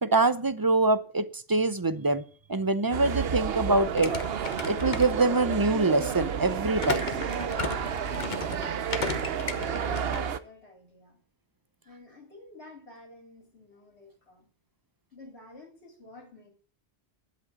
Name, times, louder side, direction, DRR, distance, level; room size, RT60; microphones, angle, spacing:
voice 1, 0.0-2.2 2.5-4.1 4.7-7.1, right 3 dB, 25° right, 13 dB, 0.6 m, -24 dB
sound 1, 2.9-10.4, right 7 dB, 65° right, 1.0 m, -31 dB
sound 2, 3.9-5.6 6.8-10.2, left 4 dB, 45° left, 1.3 m, -35 dB
voice 2, 9.3-11.2 11.9-14.5 15.1-16.5, left 2 dB, 70° left, 0 dB, 3.6 m, -50 dB
12.0 x 8.3 x 7.4 m, 0.41 s
omnidirectional pair, 1.1 m